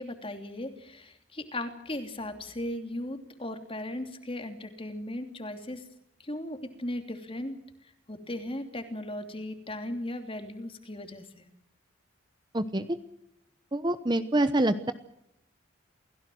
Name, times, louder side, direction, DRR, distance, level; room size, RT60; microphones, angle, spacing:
voice 1, 0.0-5.8 6.2-7.6 8.1-11.4, left 1 dB, 25° left, 7 dB, 3.0 m, -37 dB
voice 2, 13.7-14.9, right 1 dB, 20° right, 11 dB, 0.9 m, -26 dB
28.5 x 16.5 x 7.8 m, 0.80 s
head